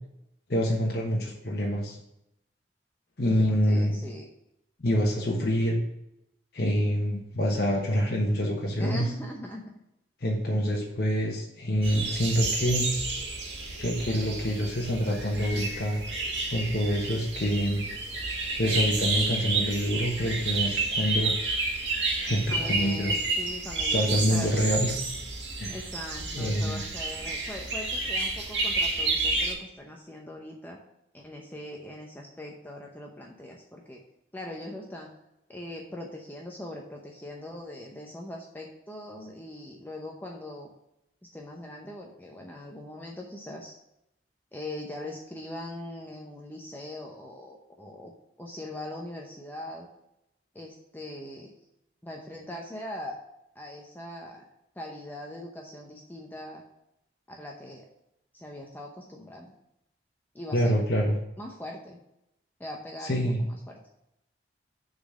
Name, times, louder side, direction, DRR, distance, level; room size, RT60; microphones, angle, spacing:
voice 1, 0.5-2.0 3.2-4.0 4.8-5.8 6.5-9.1 10.2-12.9 13.8-16.0 16.5-17.8 18.6-21.3 22.2-23.2 23.8-24.9 25.6-25.8 26.3-26.8 60.5-61.2 63.1-63.4, equal, 60° left, -2 dB, 1.1 m, -26 dB
voice 2, 3.4-4.3 8.8-9.7 10.4-10.6 22.5-24.5 25.7-30.8 31.1-34.0 34.3-35.1 35.5-40.7 41.3-43.8 44.5-48.1 48.4-49.9 50.5-51.5 52.0-53.1 53.5-54.4 54.8-56.6 57.3-57.9 58.3-59.5 60.3-60.8 61.4-62.0 62.6-63.8, left 1 dB, 10° left, 0 dB, 0.7 m, -41 dB
sound 1, 11.8-29.5, right 3 dB, 80° right, 1.8 m, -30 dB
6.7 x 4.1 x 6.2 m, 0.83 s
head